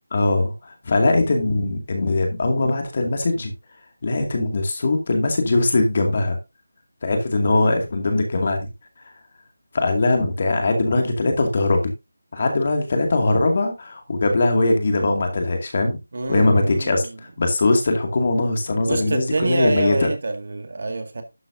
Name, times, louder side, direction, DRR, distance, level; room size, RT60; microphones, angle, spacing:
voice 1, 0.1-3.5 4.0-6.4 7.0-8.7 9.7-11.9 12.3-16.0 16.3-20.1, left 2 dB, 35° left, 2.3 m, -21 dB
voice 2, 16.1-17.1 18.9-21.2, right 3 dB, 45° right, 2.0 m, -26 dB
12.0 x 8.2 x 2.7 m
figure-of-eight pair, 175°, 0 cm